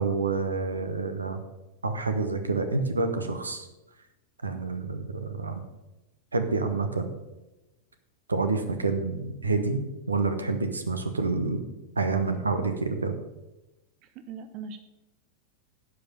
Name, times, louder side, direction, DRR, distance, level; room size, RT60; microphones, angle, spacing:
voice 1, 0.0-1.4 1.8-3.7 4.4-5.6 6.3-7.1 8.3-11.6 12.0-13.2, right 3 dB, 75° right, 8 dB, 1.0 m, -28 dB
voice 2, 14.0-14.8, right 5 dB, 40° right, 10 dB, 0.7 m, -40 dB
11.0 x 5.3 x 6.8 m, 1.0 s
figure-of-eight pair, 90°, 0 cm